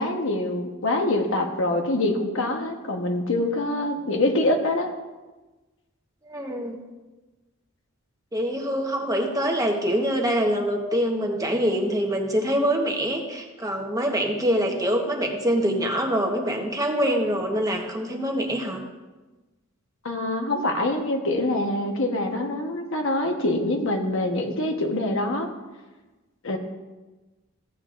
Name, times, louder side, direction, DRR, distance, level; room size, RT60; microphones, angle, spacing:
voice 1, 0.0-4.9 20.0-25.5 26.4-26.6, left 1 dB, 65° left, 4 dB, 1.2 m, -25 dB
voice 2, 6.2-6.8 8.3-18.8, equal, 15° right, 1 dB, 1.1 m, -25 dB
14.5 x 8.6 x 2.5 m, 1.2 s
head